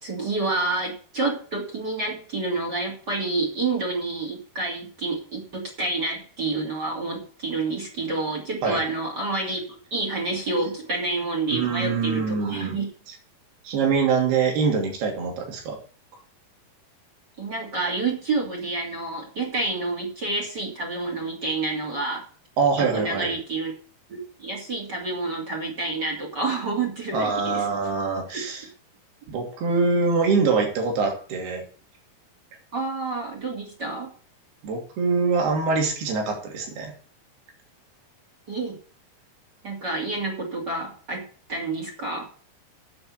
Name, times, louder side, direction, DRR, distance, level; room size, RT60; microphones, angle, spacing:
voice 1, 0.0-12.9 17.4-22.2 22.7-23.7 24.1-27.7 28.3-28.5 32.7-34.1 38.5-38.8 39.6-41.2 41.5-42.3, right 3 dB, 30° right, 1 dB, 2.9 m, -28 dB
voice 2, 11.5-12.8 13.1-13.2 13.6-15.8 22.6-23.3 27.1-28.7 29.3-31.6 34.6-36.9, right 4 dB, 80° right, 1 dB, 4.8 m, -24 dB
8.8 x 7.8 x 8.3 m, 0.42 s
omnidirectional pair, 4.5 m